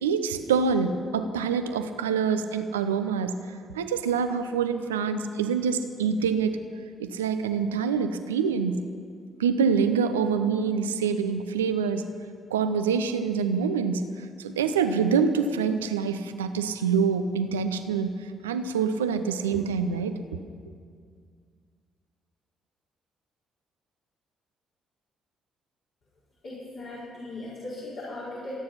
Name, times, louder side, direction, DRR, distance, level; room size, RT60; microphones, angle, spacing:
voice 1, 0.0-3.3 3.7-6.6 7.0-8.8 9.4-12.1 12.5-14.0 14.4-18.1 18.4-20.2, right 6 dB, 80° right, 9 dB, 0.7 m, -26 dB
voice 2, 26.4-28.5, left 2 dB, 55° left, -8 dB, 4.9 m, -38 dB
26.5 x 9.6 x 5.8 m, 2.1 s
figure-of-eight pair, 45°, 0 cm